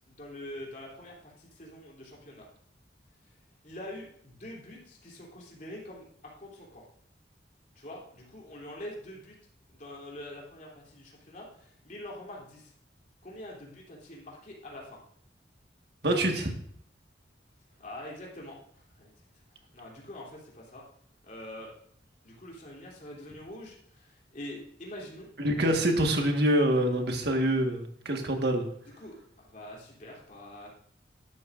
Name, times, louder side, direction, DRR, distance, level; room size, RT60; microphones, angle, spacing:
voice 1, 0.0-2.5 3.3-3.4 3.6-6.1 6.4-6.8 7.7-9.3 9.7-12.7 13.2-15.0 17.8-19.1 19.5-20.8 21.2-21.7 22.2-25.3 25.6-25.8 29.0-30.7, left 1 dB, 45° left, -3 dB, 3.1 m, -45 dB
voice 2, 16.0-16.5 25.4-28.7, right 1 dB, 60° right, 3 dB, 1.6 m, -26 dB
12.0 x 11.5 x 2.6 m, 0.63 s
head